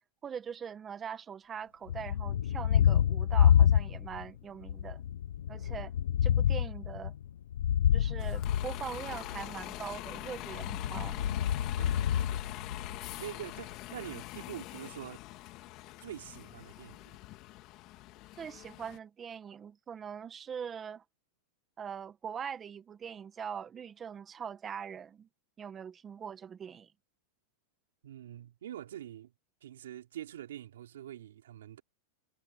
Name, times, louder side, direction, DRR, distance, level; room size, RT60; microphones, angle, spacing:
voice 1, 0.2-5.0 5.5-5.9 6.2-7.1 7.9-11.2 18.4-21.0 21.8-25.3 25.6-26.9, right 7 dB, 20° right, 1.4 m, -42 dB
Thunder, 1.9-4.3 4.6-9.4 10.5-13.1, left 9 dB, 90° left, 0.6 m, -28 dB
Bus, 8.2-19.0, left 18 dB, 45° left, 1.9 m, -44 dB
voice 2, 11.8-12.4 13.2-15.2 16.0-17.2 28.0-29.3 29.6-31.8, right 11 dB, 90° right, 4.7 m, -45 dB
supercardioid pair, 140°, 0 cm